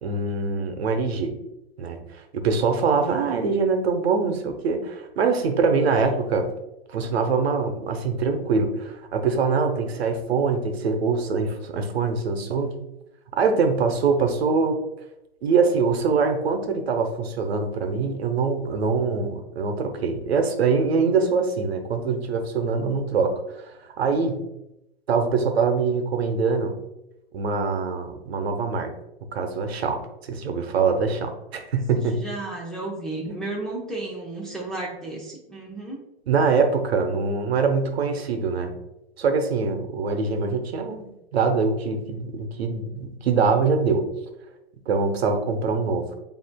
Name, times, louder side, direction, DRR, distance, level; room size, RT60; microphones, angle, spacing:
voice 1, 0.0-1.3 1.8-6.5 6.9-12.8 13.3-14.8 15.4-24.4 25.1-26.8 27.3-28.9 29.3-32.2 33.3-33.4 36.3-38.7 39.2-44.1 44.9-46.1, right 4 dB, 85° right, 6 dB, 0.8 m, -24 dB
voice 2, 32.1-36.0, right 2 dB, ahead, -5 dB, 0.6 m, -33 dB
7.5 x 2.7 x 2.2 m, 0.88 s
hypercardioid pair, 130°, 31 cm